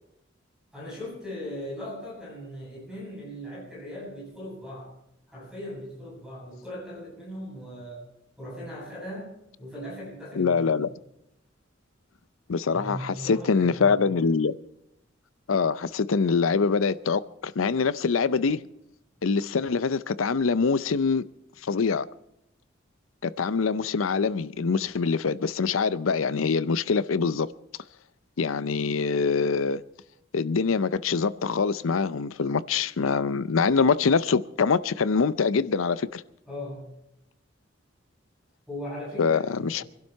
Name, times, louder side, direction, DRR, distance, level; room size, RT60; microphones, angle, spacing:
voice 1, 0.7-4.9 5.3-8.1 8.4-10.9 12.7-14.0 36.5-36.8 38.7-39.9, equal, 5° right, 8.0 m, -39 dB
voice 2, 10.4-10.9 12.5-14.6 15.5-18.6 19.2-21.2 21.6-22.1 23.2-27.5 28.4-29.8 30.3-36.2 39.2-39.8, left 5 dB, 90° left, 0.6 m, -24 dB
25.0 x 12.0 x 4.6 m
head